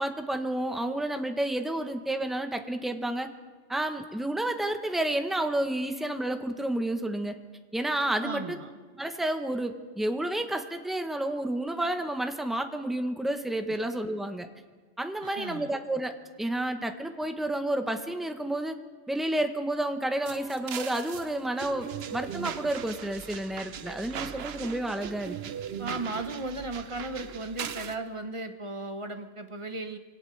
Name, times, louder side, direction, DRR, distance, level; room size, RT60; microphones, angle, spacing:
voice 1, 0.0-3.3 3.7-7.4 7.7-8.6 9.0-14.5 15.0-18.8 19.1-25.4, right 1 dB, ahead, 7 dB, 0.6 m, -30 dB
voice 2, 8.2-8.7 13.7-13.8 15.2-15.7 25.8-30.0, right 2 dB, 30° right, 7 dB, 0.8 m, -36 dB
sound 1, 20.2-28.0, right 8 dB, 60° right, 0.8 m, -39 dB
25.0 x 18.0 x 3.2 m, 1.4 s
omnidirectional pair, 1.3 m